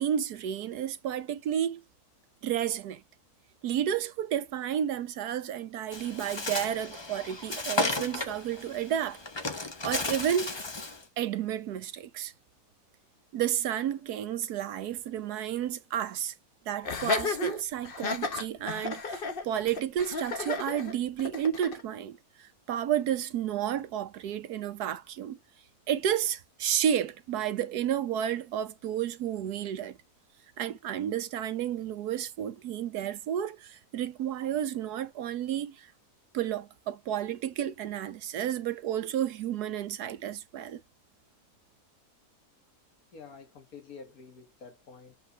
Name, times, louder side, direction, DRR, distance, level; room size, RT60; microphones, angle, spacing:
voice 1, 0.0-1.8 2.4-3.0 3.6-9.2 9.8-10.5 11.2-12.3 13.3-16.3 16.7-25.4 25.9-30.0 30.6-35.9 36.3-40.8, right 10 dB, 80° right, 1.3 m, -31 dB
Bird, 5.9-11.0, left 2 dB, 25° left, 0.7 m, -34 dB
Laughter, 16.8-21.8, left 4 dB, 40° left, 1.1 m, -33 dB
voice 2, 43.1-45.2, left 5 dB, 65° left, 2.0 m, -48 dB
7.9 x 3.8 x 3.3 m
omnidirectional pair, 1.7 m